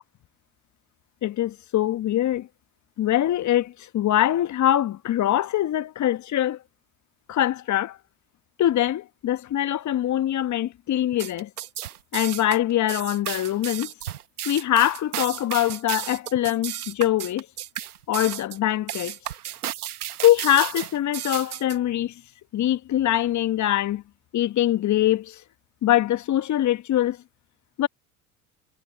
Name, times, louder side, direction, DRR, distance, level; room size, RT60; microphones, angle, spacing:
voice 1, 1.2-2.5 3.0-6.6 7.3-8.0 8.6-11.5 12.1-13.9 14.4-17.5 18.1-19.1 20.2-22.1 22.5-24.0 24.3-25.4 25.8-27.2 27.8-27.9, left 12 dB, 40° left, 1.3 m, -23 dB
sound 1, 11.1-21.8, right 11 dB, 85° right, 1.4 m, -33 dB
hypercardioid pair, 65°, 44 cm